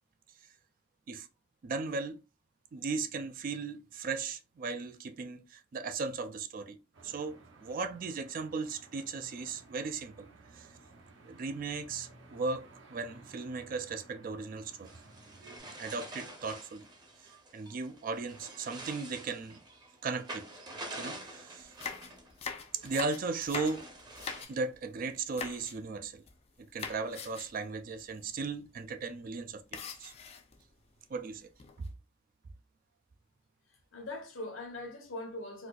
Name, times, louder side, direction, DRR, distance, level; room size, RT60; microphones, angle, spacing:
voice 1, 1.6-2.2 2.7-6.8 7.0-10.3 10.5-10.7 11.2-14.9 15.8-16.9 17.2-19.6 20.0-20.5 21.0-21.7 22.7-23.9 24.5-26.2 26.6-30.1 31.1-31.5, right 4 dB, 40° right, 0.3 m, -37 dB
sound 1, 6.9-15.6, right 2 dB, 60° right, 0.8 m, -56 dB
sound 2, 14.8-24.4, right 2 dB, 20° right, 0.7 m, -47 dB
sound 3, 21.6-24.8 25.3-25.8 26.0-26.5 26.8-27.6 28.0-28.1 28.3-28.5 29.7-30.6 31.3-31.9, left 5 dB, 30° left, 0.4 m, -42 dB
voice 2, 33.7-35.7, left 2 dB, 70° left, 0.9 m, -42 dB
4.1 x 2.4 x 2.3 m
head